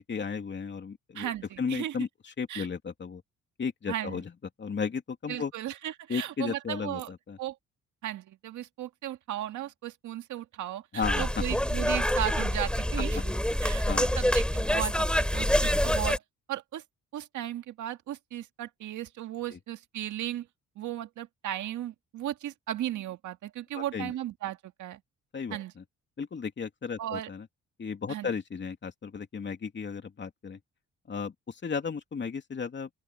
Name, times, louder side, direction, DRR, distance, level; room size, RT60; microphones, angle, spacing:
voice 1, 0.0-1.3 1.6-3.2 3.6-4.3 4.6-5.5 6.1-7.4 10.9-11.3 13.8-14.2 19.5-19.6 23.7-24.1 25.3-25.8 26.2-27.5 27.8-30.6 31.1-32.9, left 5 dB, 40° left, 2.9 m, -34 dB
voice 2, 1.2-2.0 2.5-2.7 3.9-4.2 5.3-7.1 7.4-7.6 8.0-13.3 13.6-13.8 14.2-16.2 16.5-16.8 17.1-20.5 20.8-25.0 25.5-25.7 27.0-27.3 28.1-28.3, right 12 dB, 75° right, 1.8 m, -36 dB
sound 1, 11.0-16.2, equal, 5° left, 3.1 m, -26 dB
open air
cardioid pair, 90°, 30 cm